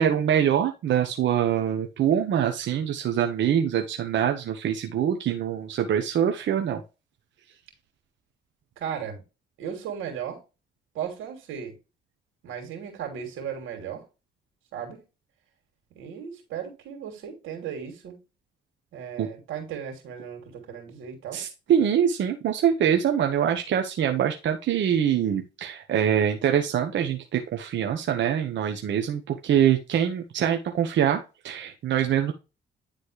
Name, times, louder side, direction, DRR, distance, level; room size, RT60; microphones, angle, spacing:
voice 1, 0.0-6.8 19.2-19.3 21.3-32.3, right 9 dB, 70° right, 1.1 m, -24 dB
voice 2, 8.8-9.2 9.6-10.4 10.9-11.8 12.4-14.0 14.7-15.0 15.9-18.2 18.9-21.5, right 8 dB, 90° right, 3.1 m, -36 dB
10.0 x 4.1 x 3.3 m
cardioid pair, 90°, 20 cm